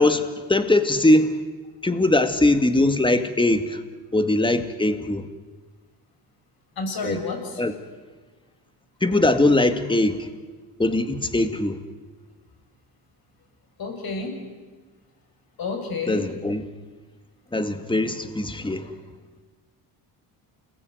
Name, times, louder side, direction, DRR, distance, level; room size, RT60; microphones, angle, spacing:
voice 1, 0.0-1.4 1.8-3.8 4.1-5.3 7.0-7.2 7.6-7.7 9.0-10.3 10.8-11.8 16.1-16.6 17.5-18.9, left 2 dB, 10° left, 8 dB, 2.2 m, -21 dB
voice 2, 6.8-7.6 13.8-14.4 15.6-16.3, left 3 dB, 50° left, 4 dB, 7.8 m, -30 dB
28.5 x 20.5 x 9.6 m, 1.4 s
cardioid pair, 90°, 47 cm